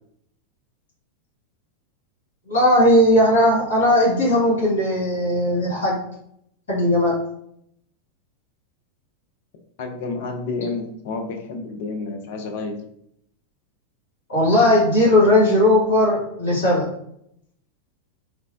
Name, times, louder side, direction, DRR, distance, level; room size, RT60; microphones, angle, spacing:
voice 1, 2.5-6.0 6.7-7.1 14.3-16.9, left 1 dB, 70° left, -6 dB, 1.2 m, -17 dB
voice 2, 9.8-12.8, left 3 dB, 50° left, 4 dB, 0.4 m, -30 dB
3.2 x 2.0 x 2.4 m, 0.73 s
figure-of-eight pair, 90°, 0 cm